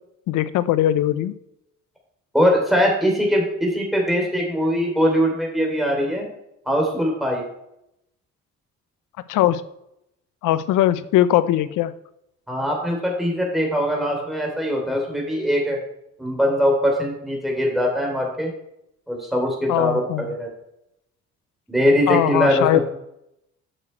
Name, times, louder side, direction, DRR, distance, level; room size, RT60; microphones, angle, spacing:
voice 1, 0.3-1.3 9.3-9.6 10.4-11.9 19.7-20.3 22.1-22.8, left 13 dB, 85° left, 15 dB, 0.6 m, -20 dB
voice 2, 2.3-6.3 6.7-7.4 12.5-15.8 16.2-18.5 19.1-20.5 21.7-22.8, equal, ahead, -1 dB, 3.2 m, -21 dB
9.1 x 6.3 x 4.4 m, 0.82 s
cardioid pair, 90°, 30 cm